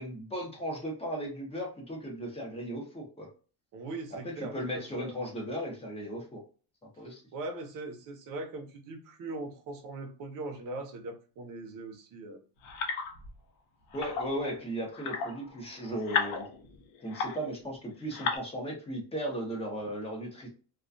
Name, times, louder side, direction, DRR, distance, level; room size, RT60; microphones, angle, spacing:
voice 1, 0.0-3.3 4.2-6.4 6.8-7.2 13.9-16.5 17.0-20.5, right 1 dB, 15° left, -1 dB, 0.6 m, -36 dB
voice 2, 3.7-5.2 7.0-12.4, right 2 dB, 45° right, 4 dB, 0.6 m, -40 dB
sound 1, 12.6-13.4 13.9-14.4 14.9-17.6 18.0-18.4, left 5 dB, 90° left, 0.7 m, -34 dB
2.3 x 2.2 x 2.5 m, 0.36 s
cardioid pair, 170°, 44 cm